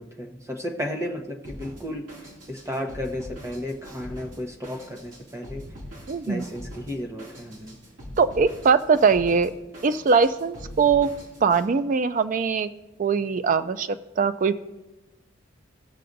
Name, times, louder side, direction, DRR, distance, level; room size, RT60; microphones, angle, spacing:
voice 1, 0.0-5.7 6.3-7.8, left 1 dB, 15° right, 2 dB, 0.9 m, -33 dB
Drum kit, 1.4-11.7, equal, 65° right, 2.5 m, -43 dB
voice 2, 6.1-6.5 8.2-9.5 9.8-11.1 11.4-12.7 13.0-14.6, right 5 dB, 40° right, 12 dB, 0.4 m, -21 dB
18.0 x 6.7 x 2.6 m, 1.1 s
head